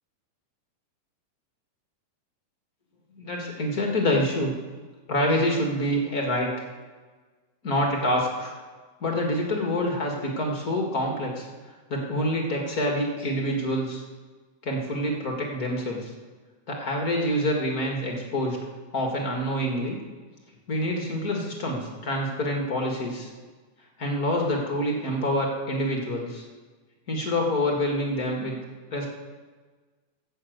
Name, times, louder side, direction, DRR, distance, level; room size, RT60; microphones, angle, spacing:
voice 1, 3.2-4.5 5.1-6.7 7.6-8.5 9.0-11.5 11.9-14.0 14.6-16.1 16.7-18.6 18.9-20.0 20.7-23.3 24.0-26.4 27.1-28.5 28.9-29.1, left 1 dB, 35° left, 0 dB, 1.8 m, -26 dB
15.5 x 7.1 x 7.9 m, 1.4 s
omnidirectional pair, 3.8 m